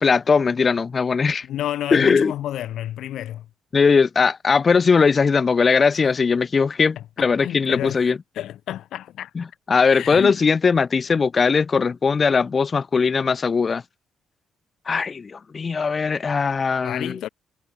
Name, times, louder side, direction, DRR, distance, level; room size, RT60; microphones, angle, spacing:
voice 1, 0.0-1.5 1.9-2.3 3.7-8.2 9.4-13.8 14.9-17.2, left 5 dB, 35° left, 0.5 m, -19 dB
voice 2, 1.4-3.5 7.0-8.0 8.4-9.3 9.8-10.4 16.8-17.3, left 12 dB, 80° left, 1.8 m, -30 dB
cardioid pair, 90°, 0 cm